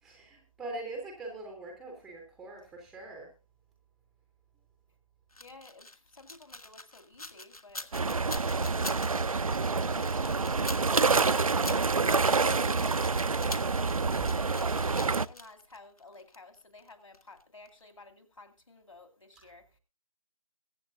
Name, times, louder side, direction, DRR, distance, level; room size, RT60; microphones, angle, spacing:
voice 1, 0.0-3.3 9.6-10.0 10.9-12.9 14.2-14.4 19.4-19.5, right 3 dB, ahead, 0.6 m, -42 dB
sound 1, 5.3-17.4 17.7-17.8, left 2 dB, 90° left, 1.3 m, -44 dB
voice 2, 5.4-8.9 9.7-10.4 14.5-19.8, left 3 dB, 65° left, 2.4 m, -53 dB
sound 2, 7.9-15.3, right 4 dB, 75° right, 0.5 m, -27 dB
22.0 x 8.5 x 2.5 m
figure-of-eight pair, 155°, 18 cm